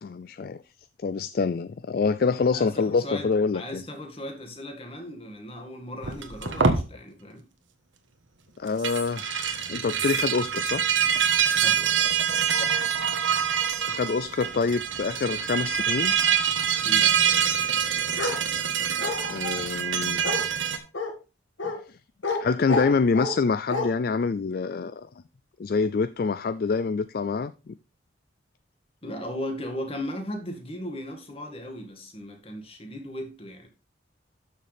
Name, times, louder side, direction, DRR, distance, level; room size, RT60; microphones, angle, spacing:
voice 1, 0.0-0.6 1.0-3.8 8.6-10.8 13.9-16.2 19.3-20.2 21.9-22.0 22.4-25.1 25.6-27.7, left 4 dB, 50° left, 0.3 m, -26 dB
voice 2, 2.5-7.4 11.5-12.0 16.8-17.1 21.6-21.7 29.0-33.7, equal, 30° left, 2.0 m, -37 dB
sound 1, 6.0-6.8 8.7-20.8, right 8 dB, 80° right, 1.4 m, -25 dB
Bark, 18.2-18.4 19.0-19.6 20.2-20.4 20.9-21.1 21.6-21.8 22.2-22.4 22.7-23.4 23.7-23.9, left 3 dB, 90° left, 2.0 m, -29 dB
12.5 x 6.5 x 3.4 m
head